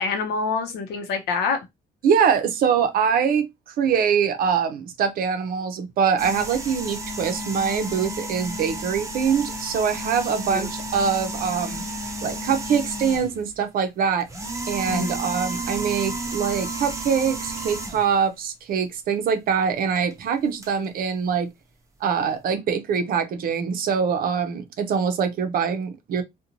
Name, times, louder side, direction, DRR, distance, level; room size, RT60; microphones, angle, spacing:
voice 1, 0.0-1.6 10.5-10.7 14.9-15.2, left 4 dB, 85° left, 0.6 m, -26 dB
voice 2, 2.0-11.8 12.2-14.3 14.7-21.5 22.0-26.2, right 6 dB, 60° right, 0.5 m, -23 dB
sound 1, 6.2-13.5 14.2-18.2 20.0-20.1 20.6-20.7, right 1 dB, 20° right, 0.6 m, -32 dB
2.5 x 2.2 x 2.8 m
cardioid pair, 130°, 16 cm